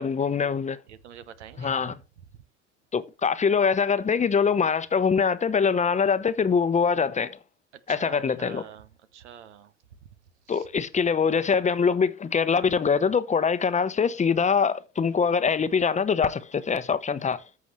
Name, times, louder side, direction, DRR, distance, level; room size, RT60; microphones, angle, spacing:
voice 1, 0.0-0.8 1.6-1.9 2.9-7.4 7.9-8.6 10.5-17.4, left 6 dB, 20° left, 0.8 m, -23 dB
voice 2, 0.9-1.9 7.7-9.7 10.5-10.7, right 9 dB, 80° right, 0.9 m, -45 dB
14.0 x 6.1 x 3.1 m
hypercardioid pair, 70°, 34 cm